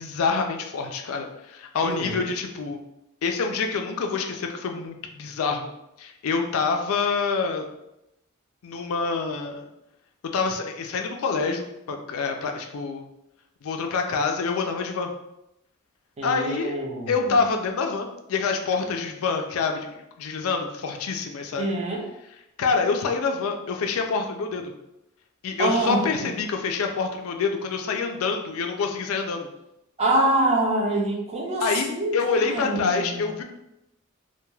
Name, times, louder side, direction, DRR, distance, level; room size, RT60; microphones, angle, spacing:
voice 1, 0.0-2.8 3.2-5.7 6.0-7.6 8.6-9.7 10.3-13.0 13.6-15.1 16.2-16.7 17.1-19.9 20.2-21.7 22.6-24.7 25.4-29.5 31.6-31.9 32.1-33.4, left 4 dB, 80° left, 4 dB, 0.4 m, -26 dB
voice 2, 1.8-2.2 16.2-17.3 21.6-22.1 25.6-26.3 30.0-32.1 32.4-33.3, right 2 dB, 30° right, -1 dB, 0.5 m, -25 dB
2.2 x 2.2 x 3.1 m, 0.86 s
head